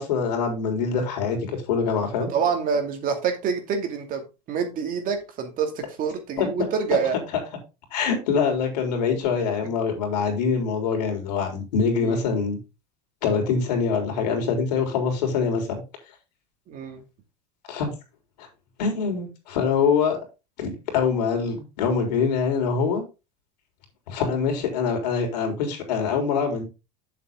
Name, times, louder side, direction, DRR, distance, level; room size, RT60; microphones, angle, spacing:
voice 1, 0.0-1.4 1.7-2.3 6.4-6.7 7.9-12.6 13.2-15.7 17.7-17.9 18.4-18.5 18.8-20.2 20.6-23.0 24.1-26.6, left 5 dB, 80° left, 4 dB, 3.6 m, -24 dB
voice 2, 2.3-7.2 12.0-12.2 16.7-17.0, right 6 dB, 40° right, 5 dB, 2.5 m, -27 dB
7.7 x 6.9 x 3.7 m, 0.28 s
supercardioid pair, 115°, 21 cm